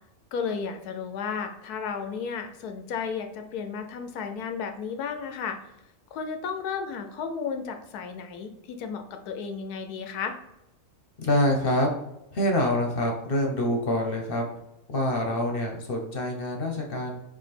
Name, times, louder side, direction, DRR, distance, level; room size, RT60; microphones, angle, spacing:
voice 1, 0.3-5.6 6.1-10.4, left 6 dB, 90° left, 7 dB, 1.2 m, -33 dB
voice 2, 11.2-11.9 12.3-14.5 14.9-17.2, left 1 dB, 45° left, 2 dB, 0.9 m, -26 dB
4.9 x 2.6 x 4.2 m, 0.90 s
omnidirectional pair, 1.6 m